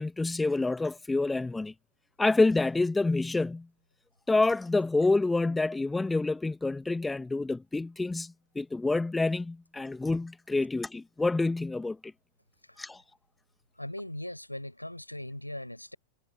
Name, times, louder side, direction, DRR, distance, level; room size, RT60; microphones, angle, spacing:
voice 1, 0.0-1.7 2.2-3.7 4.3-12.1 12.8-13.0, left 3 dB, 10° left, 1.4 m, -27 dB
voice 2, 13.8-16.0, left 1 dB, 85° left, 7.6 m, -39 dB
figure-of-eight pair, 90°, 0 cm